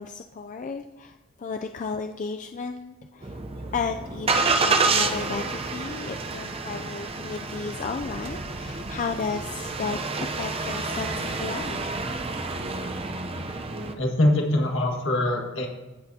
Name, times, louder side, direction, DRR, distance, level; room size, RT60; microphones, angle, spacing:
voice 1, 0.0-11.9, left 5 dB, 40° left, 5 dB, 0.3 m, -34 dB
Engine starting, 3.2-13.9, right 3 dB, 30° right, 0.6 m, -29 dB
voice 2, 14.0-15.7, left 1 dB, 70° left, 1 dB, 1.7 m, -23 dB
16.0 x 6.6 x 2.8 m, 1.1 s
head